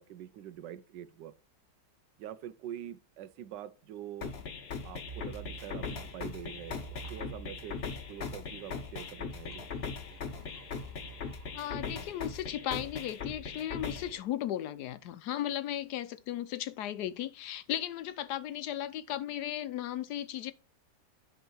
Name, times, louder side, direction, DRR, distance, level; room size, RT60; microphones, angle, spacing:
voice 1, 0.0-1.3 2.2-4.3 4.8-9.7, right 11 dB, 80° right, 1.2 m, -45 dB
sound 1, 4.2-14.2, left 5 dB, 45° left, 0.9 m, -40 dB
sound 2, 5.1-12.6, right 7 dB, 60° right, 0.4 m, -51 dB
voice 2, 11.5-20.5, left 12 dB, 70° left, 1.1 m, -36 dB
10.5 x 3.7 x 4.4 m
omnidirectional pair, 1.9 m